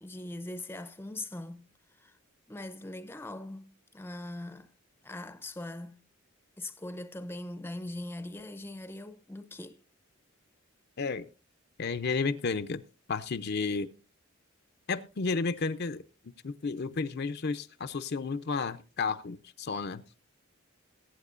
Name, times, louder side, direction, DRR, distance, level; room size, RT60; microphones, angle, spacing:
voice 1, 0.0-1.7 2.0-2.2 2.5-4.7 5.0-6.0 6.6-9.8, left 1 dB, 10° left, 0.6 m, -41 dB
voice 2, 11.8-12.8 13.1-13.9 14.9-20.0, left 4 dB, 50° left, 0.6 m, -32 dB
21.5 x 9.0 x 2.5 m
head